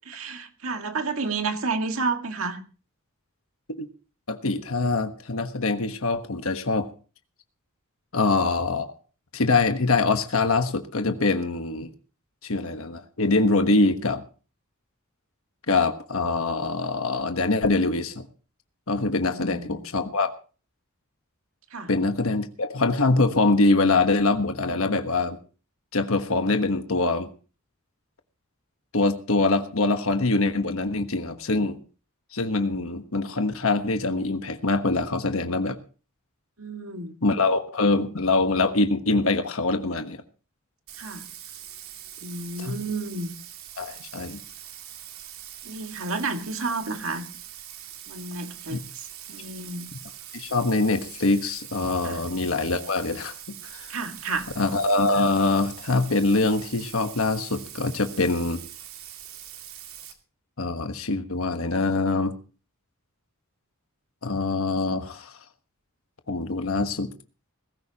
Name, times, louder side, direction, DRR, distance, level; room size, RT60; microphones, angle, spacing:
voice 1, 0.1-2.6 19.2-19.8 21.7-21.9 36.6-37.1 41.0-41.2 42.2-43.3 45.6-47.2 48.1-49.9 52.0-52.2 53.9-54.5 66.3-66.6, right 3 dB, 70° right, 5 dB, 2.0 m, -31 dB
voice 2, 4.3-6.9 8.1-8.9 9.3-11.9 12.4-14.2 15.7-18.3 18.9-20.3 21.9-25.4 25.9-27.3 28.9-31.8 32.3-35.8 37.2-40.2 42.6-42.8 43.8-44.4 48.7-48.8 50.3-53.3 53.7-53.9 54.6-58.6 60.6-62.3 64.2-65.3 66.3-67.1, left 3 dB, 70° left, 7 dB, 1.3 m, -24 dB
Bathtub (filling or washing), 40.9-60.1, right 11 dB, 85° right, 2.4 m, -43 dB
21.0 x 14.5 x 2.9 m, 0.37 s
head